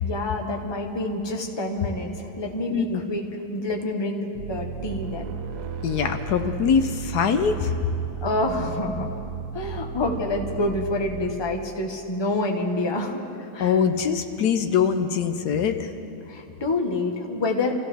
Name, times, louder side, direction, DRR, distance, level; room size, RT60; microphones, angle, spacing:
voice 1, 0.0-5.3 8.2-9.2 9.5-13.2 13.5-13.8 16.3-17.7, left 2 dB, 20° left, 1 dB, 1.1 m, -27 dB
voice 2, 2.7-3.0 5.8-7.7 13.6-15.9, left 7 dB, 75° left, 7 dB, 1.3 m, -23 dB
sound 1, 4.3-11.8, right 7 dB, 75° right, 1.2 m, -35 dB
27.0 x 15.5 x 3.4 m, 2.8 s
omnidirectional pair, 1.8 m